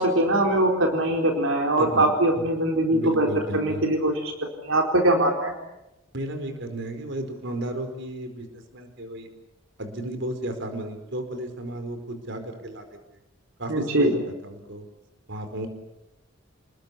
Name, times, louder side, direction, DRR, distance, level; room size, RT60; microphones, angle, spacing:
voice 1, 0.0-3.3 3.5-4.3 4.6-5.5 13.7-14.1, right 1 dB, 75° right, 2 dB, 4.3 m, -22 dB
voice 2, 1.8-2.1 2.9-3.8 6.1-9.3 9.8-12.8 13.6-14.9 15.3-15.7, right 1 dB, 60° right, 7 dB, 4.7 m, -33 dB
29.0 x 21.0 x 8.4 m, 0.91 s
head